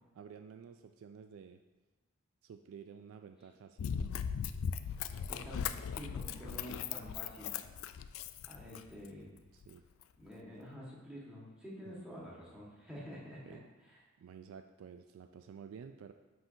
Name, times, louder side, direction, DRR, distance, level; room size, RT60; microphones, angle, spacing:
voice 1, 0.1-1.6 2.4-3.9 8.6-8.7 9.5-9.8 11.8-12.0 13.4-13.6 14.2-16.1, right 7 dB, 85° right, 7 dB, 0.3 m, -52 dB
Run, 3.8-9.1 9.6-9.7, left 7 dB, 80° left, 0.3 m, -38 dB
voice 2, 5.1-7.5 8.4-9.3 10.2-13.6, equal, 5° right, -6 dB, 1.4 m, -48 dB
7.8 x 5.8 x 2.7 m, 1.2 s
head